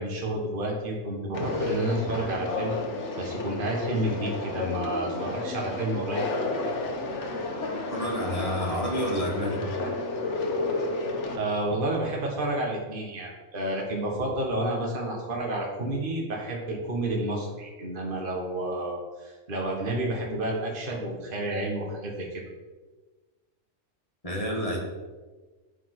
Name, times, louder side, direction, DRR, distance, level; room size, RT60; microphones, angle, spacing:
voice 1, 0.0-2.8 3.2-6.2 11.3-22.4, right 1 dB, 40° right, -2 dB, 1.6 m, -30 dB
Conversation, 1.3-11.4, left 3 dB, 60° left, 1.4 m, -31 dB
voice 2, 7.9-9.7 24.2-24.8, equal, 25° left, -2 dB, 1.9 m, -29 dB
8.8 x 4.9 x 6.0 m, 1.3 s
omnidirectional pair, 1.4 m